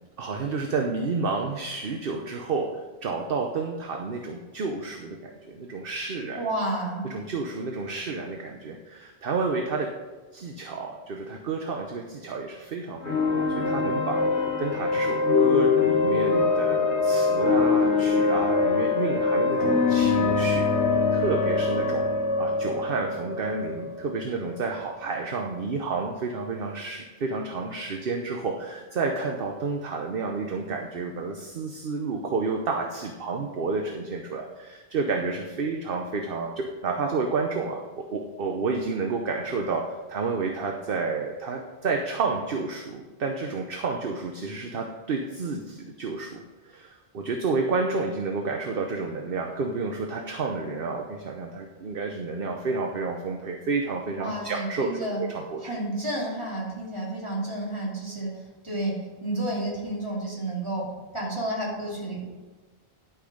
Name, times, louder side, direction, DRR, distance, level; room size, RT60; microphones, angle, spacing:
voice 1, 0.2-6.5 7.1-9.9 10.3-22.1 22.4-55.7, right 4 dB, 60° right, 3 dB, 1.0 m, -30 dB
voice 2, 6.4-7.0 54.2-55.2 55.6-60.9 61.1-62.2, right 1 dB, 25° right, -5 dB, 3.0 m, -31 dB
sound 1, 13.0-24.7, left 4 dB, 85° left, 1.5 m, -23 dB
11.5 x 6.2 x 5.0 m, 1.2 s
omnidirectional pair, 1.1 m